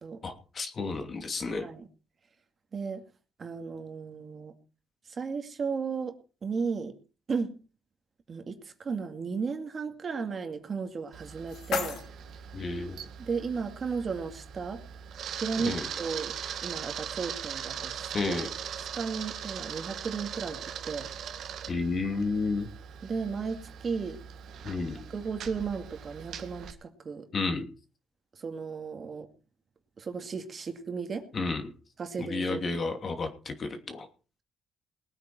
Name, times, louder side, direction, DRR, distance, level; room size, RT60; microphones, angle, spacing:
voice 1, 0.2-1.7 12.5-13.1 15.6-15.9 18.1-18.5 21.7-22.7 24.6-25.0 27.3-27.7 31.3-31.6 32.2-34.1, left 3 dB, 45° left, 6 dB, 2.8 m, -31 dB
voice 2, 1.6-1.9 2.7-3.0 3.4-4.5 5.1-6.1 6.4-7.0 7.3-7.6 8.3-12.0 13.2-14.8 15.4-16.3 16.6-18.4 18.8-21.1 23.0-24.2 25.1-27.3 28.3-29.3 30.0-31.3 32.0-32.7, right 5 dB, 45° right, 6 dB, 2.4 m, -34 dB
sound 1, 11.0-13.0, left 7 dB, 75° left, 2.5 m, -37 dB
Camera, 11.1-26.7, right 8 dB, 70° right, 1.6 m, -40 dB
20.5 x 9.1 x 4.5 m, 0.36 s
cardioid pair, 90°, 0 cm